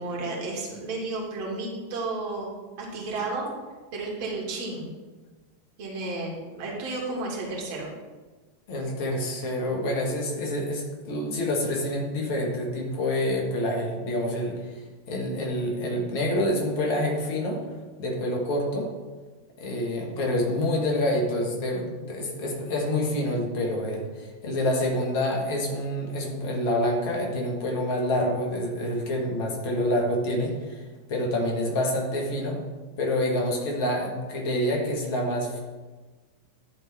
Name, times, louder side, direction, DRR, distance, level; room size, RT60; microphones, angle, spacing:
voice 1, 0.0-3.5 3.9-4.9 5.8-7.9, right 2 dB, 50° right, -3 dB, 2.5 m, -32 dB
voice 2, 8.7-14.8 15.1-17.6 18.0-18.9 19.6-32.6 33.0-35.6, left 1 dB, 45° left, -1 dB, 1.9 m, -27 dB
11.0 x 4.0 x 4.5 m, 1.3 s
figure-of-eight pair, 90°, 0 cm